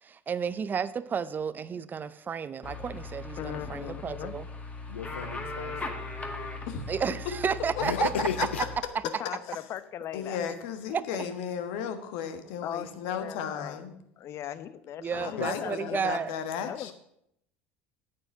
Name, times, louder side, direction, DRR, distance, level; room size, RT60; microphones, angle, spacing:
voice 1, 0.0-4.5 6.9-8.1 8.4-8.5 10.9-11.0 15.0-16.3, right 6 dB, 30° right, 16 dB, 0.6 m, -32 dB
sound 1, 2.6-8.8, left 3 dB, 20° left, 1.9 m, -39 dB
voice 2, 3.4-4.4 9.2-10.4 12.6-13.8 14.2-16.2 16.6-16.9, left 11 dB, 45° left, 14 dB, 0.8 m, -38 dB
voice 3, 4.9-5.8 7.8-8.6 15.4-15.5, left 8 dB, 85° left, 12 dB, 0.6 m, -33 dB
voice 4, 10.1-13.9 15.1-16.9, left 8 dB, 65° left, 9 dB, 1.4 m, -35 dB
9.2 x 7.7 x 6.4 m, 0.76 s
hypercardioid pair, 75°, 6 cm